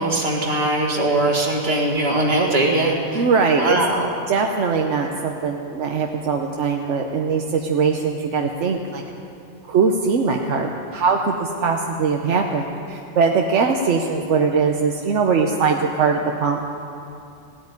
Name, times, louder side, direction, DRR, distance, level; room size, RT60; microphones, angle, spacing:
voice 1, 0.0-3.3 3.6-4.1, right 2 dB, 55° right, 0 dB, 2.1 m, -21 dB
voice 2, 3.1-3.8 4.3-9.0 9.7-16.6, right 5 dB, 80° right, 2 dB, 1.2 m, -21 dB
16.5 x 9.0 x 9.6 m, 2.6 s
omnidirectional pair, 1.2 m